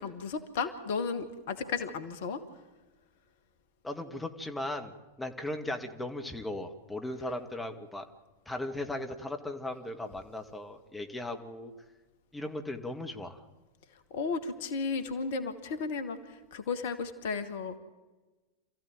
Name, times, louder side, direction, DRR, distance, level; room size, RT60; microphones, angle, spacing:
voice 1, 0.0-2.4 14.1-17.8, left 5 dB, 55° left, 11 dB, 1.7 m, -34 dB
voice 2, 3.8-8.1 8.5-11.7 12.3-13.4, left 1 dB, 10° left, 5 dB, 2.0 m, -37 dB
27.5 x 15.0 x 9.1 m, 1.2 s
figure-of-eight pair, 90°, 0 cm